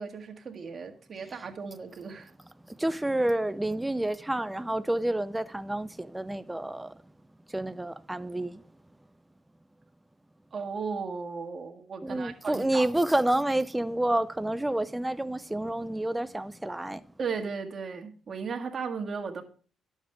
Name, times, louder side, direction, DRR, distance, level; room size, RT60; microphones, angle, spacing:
voice 1, 0.0-2.3 10.5-12.9 17.2-19.4, right 5 dB, 45° right, 1.7 m, -36 dB
voice 2, 2.7-6.9 7.5-8.6 12.0-17.0, right 1 dB, 10° right, 0.4 m, -29 dB
11.5 x 7.2 x 3.5 m
cardioid pair, 90°, 0 cm